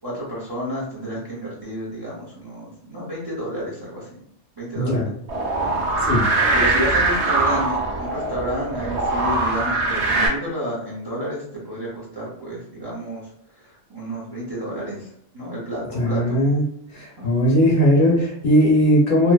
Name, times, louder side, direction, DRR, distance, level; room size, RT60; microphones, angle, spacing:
voice 1, 0.0-4.2 4.6-5.1 5.6-5.7 6.5-15.1 15.3-16.4 17.2-17.3, right 1 dB, 25° right, -7 dB, 0.7 m, -31 dB
voice 2, 4.7-5.1 6.1-6.2 15.9-16.6 16.9-19.3, equal, 55° left, -4 dB, 1.0 m, -18 dB
sound 1, 5.3-10.3, right 2 dB, 70° right, 0.9 m, -22 dB
2.7 x 2.1 x 2.3 m, 0.73 s
omnidirectional pair, 1.2 m